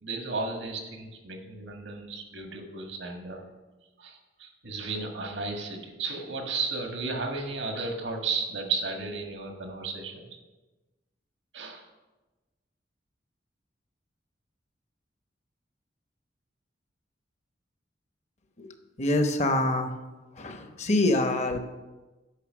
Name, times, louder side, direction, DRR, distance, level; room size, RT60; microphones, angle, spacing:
voice 1, 0.0-3.4 4.0-10.3 11.5-11.8, right 3 dB, 85° right, 3 dB, 1.6 m, -34 dB
voice 2, 19.0-19.9 20.4-21.6, left 1 dB, 40° left, 6 dB, 0.9 m, -25 dB
10.0 x 5.6 x 6.2 m, 1.2 s
head